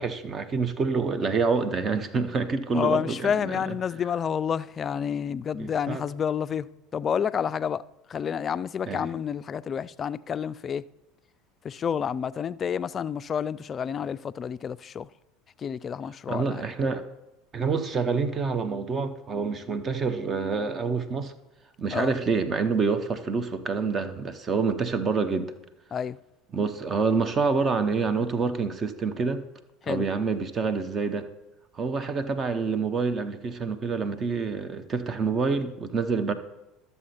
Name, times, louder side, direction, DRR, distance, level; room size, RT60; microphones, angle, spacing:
voice 1, 0.0-3.7 5.6-6.0 8.9-9.1 16.3-17.1 17.5-21.3 21.8-25.5 26.5-29.4 29.9-31.3 31.7-36.3, right 4 dB, 35° right, 0.9 m, -27 dB
voice 2, 2.7-6.7 6.9-7.8 8.1-10.8 11.6-15.1 15.6-16.6 21.9-22.2 25.9-26.2 29.9-30.1, left 7 dB, 35° left, 0.3 m, -29 dB
12.5 x 6.8 x 4.3 m
hypercardioid pair, 80°, 0 cm